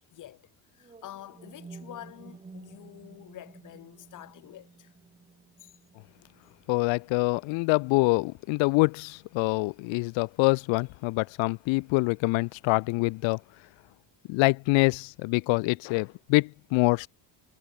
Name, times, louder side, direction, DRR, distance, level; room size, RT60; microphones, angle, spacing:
voice 1, 0.0-4.9 5.6-5.8, left 13 dB, 40° left, 2.4 m, -47 dB
sound 1, 0.8-8.8, right 4 dB, 15° right, 4.9 m, -52 dB
voice 2, 6.7-13.4 14.3-17.1, left 26 dB, 80° left, 0.7 m, -25 dB
cardioid pair, 175°, 45 cm